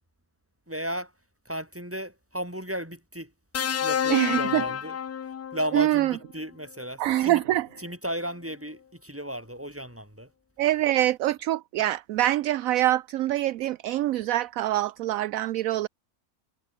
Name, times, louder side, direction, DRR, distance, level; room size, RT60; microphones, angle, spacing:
voice 1, 0.7-1.1 1.5-3.3 3.8-5.0 5.5-7.4 7.8-10.3, equal, 10° right, 5.8 m, -34 dB
sound 1, 3.5-5.8 7.1-7.3, left 8 dB, 90° left, 1.8 m, -29 dB
voice 2, 4.1-4.6 5.7-6.1 7.0-7.7 10.6-15.9, right 14 dB, 70° right, 0.9 m, -24 dB
omnidirectional pair, 1.6 m